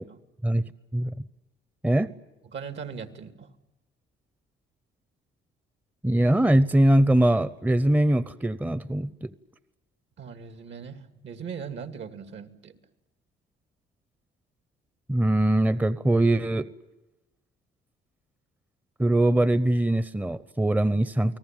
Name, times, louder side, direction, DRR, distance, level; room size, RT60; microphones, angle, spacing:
voice 1, 2.5-3.5 10.2-12.8, right 6 dB, 65° right, 9 dB, 2.5 m, -39 dB
voice 2, 6.0-9.3 15.1-16.7 19.0-21.4, right 1 dB, 10° right, 16 dB, 0.8 m, -22 dB
29.5 x 19.5 x 9.0 m, 1.0 s
cardioid pair, 90°, 20 cm